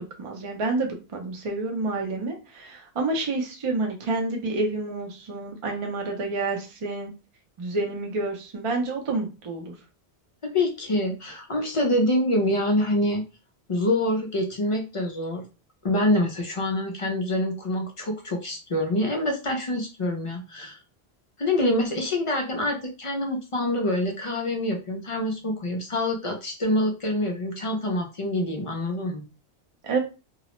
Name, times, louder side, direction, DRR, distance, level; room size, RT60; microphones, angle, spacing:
voice 1, 0.0-7.1 7.6-9.7 29.8-30.0, right 3 dB, 40° right, 2 dB, 0.5 m, -29 dB
voice 2, 10.4-13.2 13.7-15.4 15.8-20.8 21.4-29.3, left 1 dB, 55° left, 2 dB, 0.3 m, -26 dB
2.3 x 2.0 x 2.9 m, 0.29 s
omnidirectional pair, 1.1 m